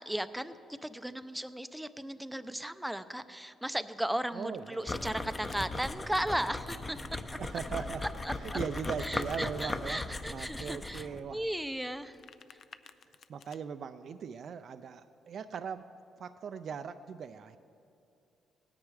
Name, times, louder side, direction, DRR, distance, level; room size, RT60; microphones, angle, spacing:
voice 1, 0.0-7.0 8.2-8.6 9.0-12.2 12.5-12.6, right 1 dB, 5° right, 12 dB, 0.5 m, -36 dB
Domestic sounds home sounds, 4.3-5.7 8.3-9.4 11.9-13.6, left 7 dB, 60° left, 0.5 m, -56 dB
voice 2, 4.3-4.8 5.6-5.7 7.4-8.0 8.4-10.0 10.3-11.4 13.3-15.9 16.2-17.6, right 6 dB, 60° right, 10 dB, 0.4 m, -39 dB
sound 1, 4.9-11.2, left 2 dB, 25° left, 0.8 m, -38 dB
17.5 x 9.7 x 4.8 m, 2.6 s
cardioid pair, 90°, 0 cm